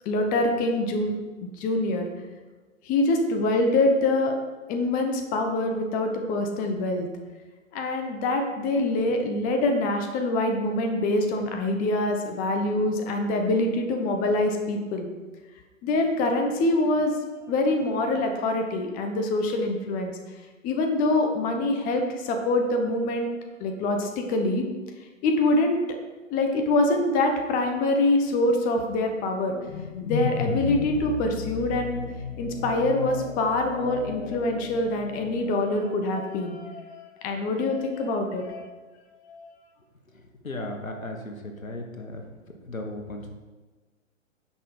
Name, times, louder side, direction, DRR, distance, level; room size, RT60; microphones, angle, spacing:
voice 1, 0.0-1.1 1.4-2.1 2.8-4.4 4.7-7.1 7.7-15.1 15.8-17.2 17.5-20.1 20.6-23.3 23.6-24.6 25.2-26.0 26.3-29.6 30.0-32.0 32.4-38.7 39.3-39.5, left 2 dB, 20° left, 4 dB, 0.9 m, -25 dB
sound 1, 29.4-35.7, left 6 dB, 45° left, 0.9 m, -34 dB
voice 2, 40.4-42.3 42.7-43.3, left 1 dB, 85° left, 4 dB, 1.6 m, -35 dB
10.0 x 6.0 x 4.9 m, 1.3 s
figure-of-eight pair, 120°, 40 cm